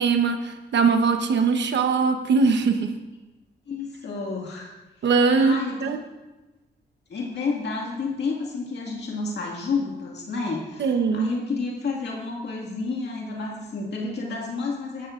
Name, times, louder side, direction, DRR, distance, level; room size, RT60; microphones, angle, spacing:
voice 1, 0.0-2.9 5.0-5.5 5.8-6.0 10.8-11.3, right 5 dB, 75° right, 6 dB, 1.0 m, -21 dB
voice 2, 3.7-4.7 5.4-5.9 7.1-15.1, left 4 dB, 70° left, -2 dB, 2.1 m, -30 dB
17.0 x 12.0 x 2.5 m, 1.1 s
cardioid pair, 110°, 18 cm